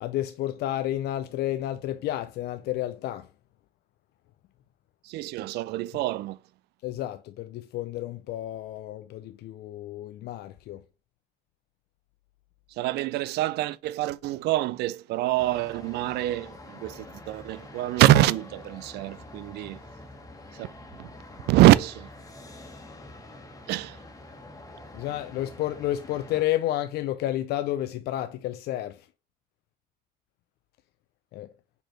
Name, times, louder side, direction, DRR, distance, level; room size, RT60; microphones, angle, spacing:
voice 1, 0.0-3.3 6.8-10.8 24.9-29.1 31.3-31.5, left 13 dB, 70° left, 0.5 m, -31 dB
voice 2, 5.0-6.4 12.7-19.8 20.5-20.7 21.0-21.1 21.5-22.1 23.7-24.0, right 15 dB, 75° right, 0.4 m, -24 dB
sound 1, 15.4-26.4, left 2 dB, 20° left, 1.4 m, -46 dB
5.2 x 4.4 x 4.3 m
cardioid pair, 110°, 17 cm